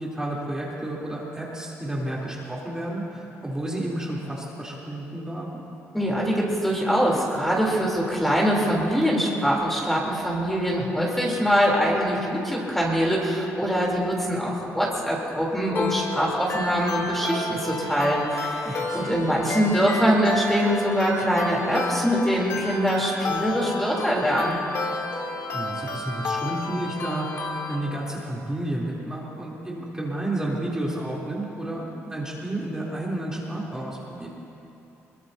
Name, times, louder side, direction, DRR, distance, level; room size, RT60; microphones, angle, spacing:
voice 1, 0.0-5.6 18.6-19.2 25.5-34.3, right 1 dB, 10° right, -5 dB, 3.3 m, -31 dB
voice 2, 5.9-24.6, equal, 5° left, -3 dB, 3.4 m, -23 dB
sound 1, 15.7-27.7, left 3 dB, 50° left, 1.8 m, -31 dB
22.0 x 20.5 x 2.8 m, 2.8 s
cardioid pair, 90°, 5 cm